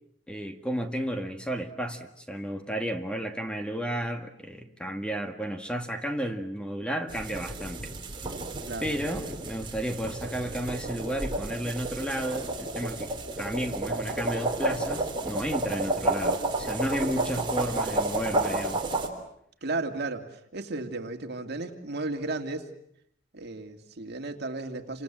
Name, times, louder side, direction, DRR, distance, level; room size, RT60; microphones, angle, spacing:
voice 1, 0.3-7.9 8.8-18.8, equal, 5° left, 6 dB, 1.8 m, -33 dB
sound 1, 7.1-19.1, right 2 dB, 25° right, 3.7 m, -31 dB
voice 2, 19.6-22.7 23.3-25.0, right 2 dB, 60° right, 5 dB, 2.7 m, -34 dB
29.0 x 26.5 x 7.6 m, 0.72 s
head